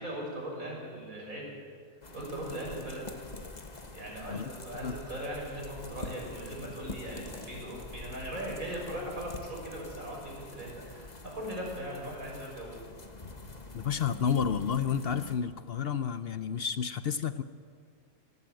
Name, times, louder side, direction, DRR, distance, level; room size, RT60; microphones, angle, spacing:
voice 1, 0.0-1.5 2.1-3.0 3.9-12.7, right 1 dB, 65° right, -2 dB, 6.8 m, -39 dB
sound 1, 2.0-15.4, left 2 dB, 30° left, 1.6 m, -45 dB
voice 2, 13.7-17.4, left 7 dB, 55° left, 13 dB, 0.7 m, -30 dB
27.5 x 12.5 x 9.0 m, 2.1 s
omnidirectional pair, 1.5 m